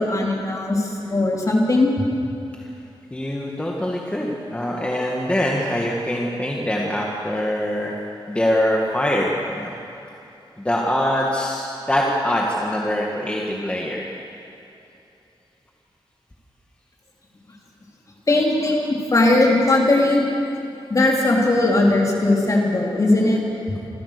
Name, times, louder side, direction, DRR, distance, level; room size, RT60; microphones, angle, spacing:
voice 1, 0.0-1.9 18.3-20.3 20.9-23.4, left 2 dB, 40° left, -2 dB, 3.8 m, -18 dB
voice 2, 3.1-7.9 8.3-9.8 10.6-14.1, left 1 dB, 15° left, -2 dB, 1.8 m, -23 dB
27.0 x 15.0 x 6.8 m, 2.9 s
wide cardioid pair, 130°, 9 cm